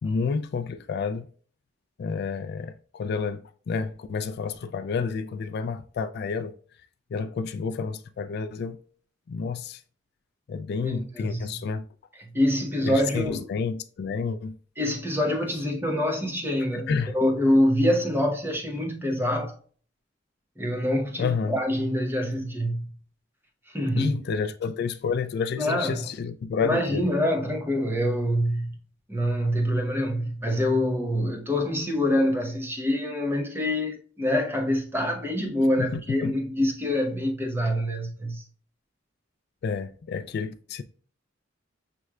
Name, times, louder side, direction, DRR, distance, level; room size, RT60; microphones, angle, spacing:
voice 1, 0.0-1.3 2.0-6.5 7.1-8.8 9.3-9.8 10.5-11.8 12.8-14.5 16.7-17.1 21.2-21.6 24.0-27.1 35.8-36.3 39.6-40.8, left 5 dB, 55° left, 0.3 m, -30 dB
voice 2, 10.8-11.5 12.3-13.4 14.8-19.5 20.6-22.9 23.7-24.1 25.6-26.1 26.6-28.8 29.1-38.4, left 1 dB, 10° right, 0.8 m, -25 dB
6.0 x 3.2 x 2.2 m
head